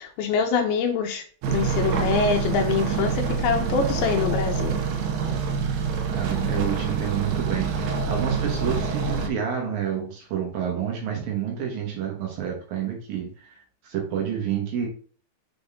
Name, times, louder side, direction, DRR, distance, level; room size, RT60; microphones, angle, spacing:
voice 1, 0.0-4.8, left 5 dB, 75° left, 4 dB, 2.6 m, -25 dB
sound 1, 1.4-9.3, right 5 dB, 85° right, 2.9 m, -26 dB
voice 2, 6.1-14.9, right 8 dB, 65° right, 1 dB, 2.9 m, -29 dB
6.9 x 3.9 x 3.6 m, 0.41 s
omnidirectional pair, 4.7 m